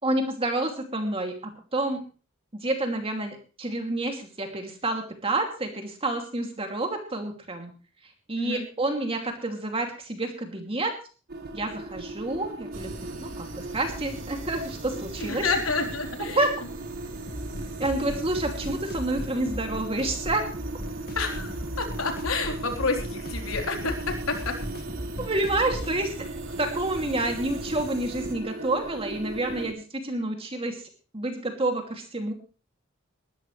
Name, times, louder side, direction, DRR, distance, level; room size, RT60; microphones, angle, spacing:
voice 1, 0.0-2.0 2.5-7.7 8.3-10.9 11.5-12.9 13.2-15.5 16.3-16.5 17.8-20.4 25.2-26.3 26.6-30.8 31.1-32.3, right 2 dB, 30° right, 3 dB, 2.7 m, -29 dB
sound 1, 11.3-29.7, right 2 dB, 50° right, 2.0 m, -38 dB
sound 2, 12.7-28.4, right 1 dB, 75° right, 3.1 m, -41 dB
voice 2, 15.2-16.5 21.2-24.5, left 3 dB, 85° left, 3 dB, 3.8 m, -29 dB
sound 3, 17.3-26.0, equal, 50° left, 1.8 m, -37 dB
21.0 x 13.0 x 3.3 m, 0.36 s
head